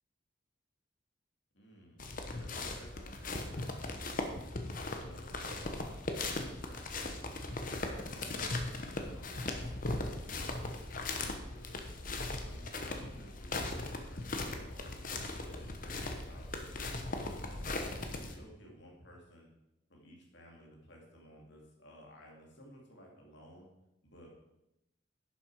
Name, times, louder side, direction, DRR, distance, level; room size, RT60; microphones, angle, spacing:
voice 1, 1.5-4.3 4.8-7.2 7.7-11.8 12.4-15.0 15.3-19.5 19.9-23.7 24.0-24.3, equal, 65° left, -1 dB, 2.7 m, -56 dB
sound 1, 2.0-18.3, left 2 dB, 45° left, 1.1 m, -39 dB
11.0 x 7.3 x 4.8 m, 0.89 s
head